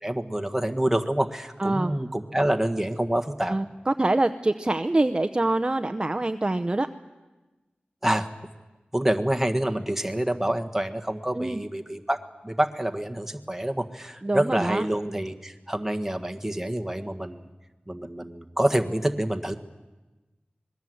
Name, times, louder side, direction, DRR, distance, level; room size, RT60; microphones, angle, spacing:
voice 1, 0.0-3.5 8.0-8.3 8.9-12.2 12.4-17.4 17.9-19.6, right 1 dB, 10° right, 6 dB, 1.6 m, -27 dB
voice 2, 1.6-1.9 3.5-6.9 11.3-11.6 14.2-14.9, right 2 dB, 25° right, 8 dB, 0.8 m, -25 dB
26.0 x 21.0 x 7.9 m, 1.2 s
wide cardioid pair, 85°, 3 cm